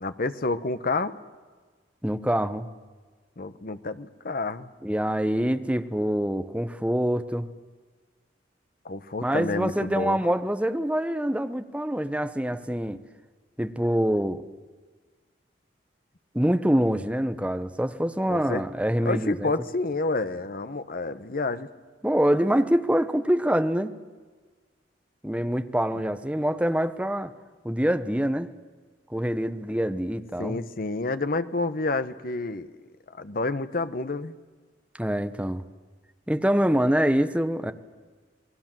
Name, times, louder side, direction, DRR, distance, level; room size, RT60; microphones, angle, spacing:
voice 1, 0.0-1.2 3.4-4.7 8.8-10.2 18.3-18.6 19.0-21.7 30.4-32.7 33.1-34.3, left 3 dB, 55° left, 12 dB, 1.1 m, -29 dB
voice 2, 2.0-2.7 4.8-7.5 9.2-13.0 13.6-14.4 16.3-19.5 22.0-24.0 25.2-27.3 27.6-28.5 29.1-30.6 35.0-35.6 36.3-37.7, equal, 5° right, 10 dB, 1.0 m, -25 dB
28.5 x 20.0 x 7.6 m, 1.4 s
head